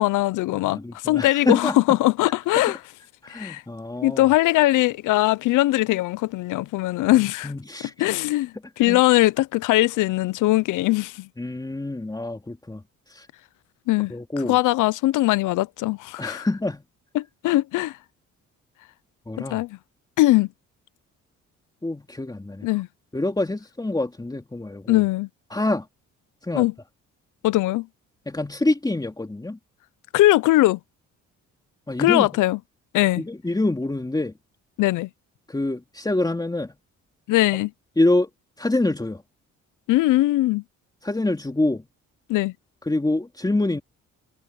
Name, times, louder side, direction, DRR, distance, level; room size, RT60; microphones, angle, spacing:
voice 1, 0.0-2.8 3.3-3.6 4.0-7.5 8.0-11.3 13.9-14.1 14.5-16.5 17.1-18.0 19.4-19.8 20.2-20.5 22.6-22.9 24.9-25.3 26.5-26.7 27.4-27.9 30.1-30.8 32.0-32.6 32.9-33.2 34.8-35.1 37.3-37.7 39.9-40.6 42.3-42.5, left 17 dB, 85° left, 0.6 m, -20 dB
voice 2, 0.6-1.8 3.2-4.2 7.4-7.9 8.9-9.0 11.4-12.8 13.1-13.3 14.1-14.6 16.2-16.8 19.3-19.6 21.8-22.7 23.1-25.0 25.5-25.9 26.4-26.7 28.3-29.6 31.9-32.3 33.2-34.3 35.5-36.7 38.0-38.3 38.6-39.2 41.0-41.8 42.9-43.8, left 2 dB, 15° left, 3.0 m, -26 dB
cardioid pair, 90°, 30 cm